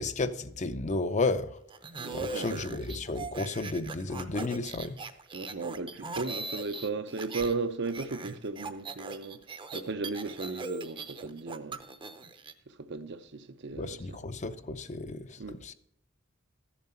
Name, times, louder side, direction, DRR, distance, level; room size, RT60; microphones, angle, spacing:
voice 1, 0.0-1.6 2.1-5.0 13.7-15.7, left 3 dB, 35° left, 0.6 m, -33 dB
sound 1, 1.7-7.5 7.8-12.5, right 3 dB, 25° right, 0.7 m, -40 dB
voice 2, 2.0-2.6 5.3-9.4 9.7-11.8 12.7-14.2 15.4-15.6, right 3 dB, 60° right, 0.7 m, -36 dB
14.0 x 7.2 x 4.3 m
head